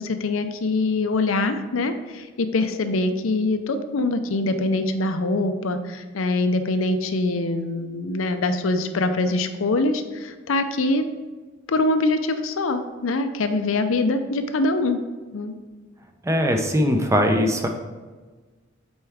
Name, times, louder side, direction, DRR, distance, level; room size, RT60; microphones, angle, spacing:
voice 1, 0.0-11.0 11.7-15.0 15.3-15.6, left 2 dB, 90° left, 9 dB, 0.6 m, -24 dB
voice 2, 16.2-17.7, equal, 15° right, 4 dB, 0.6 m, -20 dB
8.0 x 4.4 x 3.5 m, 1.3 s
head